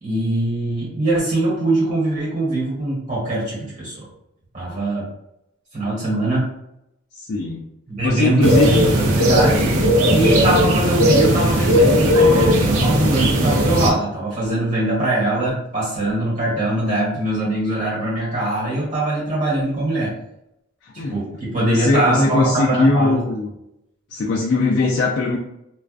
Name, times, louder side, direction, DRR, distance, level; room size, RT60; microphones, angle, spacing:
voice 1, 0.0-4.1 4.5-5.1 5.7-6.5 7.9-20.1 20.9-23.2, right 2 dB, 40° right, -7 dB, 1.3 m, -22 dB
voice 2, 7.2-7.7 8.0-8.8 20.8-21.1 21.6-23.5 24.1-25.4, left 3 dB, 50° left, -3 dB, 0.3 m, -20 dB
sound 1, 8.4-13.9, equal, 90° right, 0.5 m, -16 dB
2.3 x 2.3 x 2.4 m, 0.83 s
head